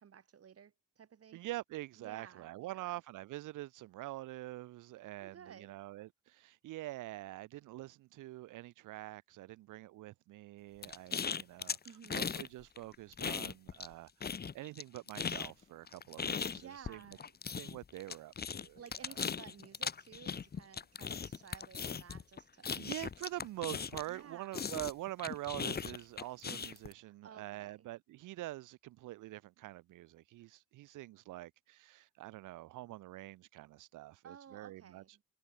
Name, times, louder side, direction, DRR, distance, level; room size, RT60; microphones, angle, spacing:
voice 1, 0.0-1.4 2.0-2.8 5.2-5.8 11.9-12.4 16.5-17.2 18.8-22.8 24.1-24.6 27.0-27.9 34.2-35.1, right 8 dB, 50° right, 5.3 m, -55 dB
voice 2, 1.3-11.8 12.1-17.2 17.6-18.8 22.8-35.0, right 17 dB, 90° right, 1.5 m, -45 dB
sound 1, 10.8-12.5 12.8-13.9 14.2-24.2 24.5-26.9, left 6 dB, 30° left, 1.1 m, -39 dB
cardioid pair, 90°, 30 cm